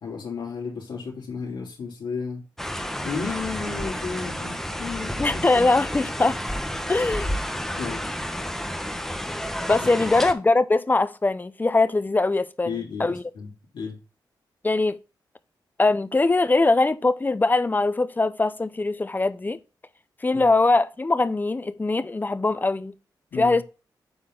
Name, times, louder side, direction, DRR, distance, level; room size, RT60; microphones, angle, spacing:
voice 1, 0.0-2.4 3.0-5.8 7.6-8.0 10.0-10.1 12.6-14.0 20.3-20.5 23.3-23.6, left 5 dB, 80° left, 3.0 m, -33 dB
sound 1, 2.6-10.3, equal, 5° left, 1.1 m, -31 dB
voice 2, 5.2-6.4 6.9-7.3 9.7-13.2 14.6-15.0 15.8-19.6 20.2-22.9 23.3-23.6, left 3 dB, 25° left, 0.6 m, -22 dB
7.7 x 4.4 x 3.8 m
cardioid pair, 80°, 8 cm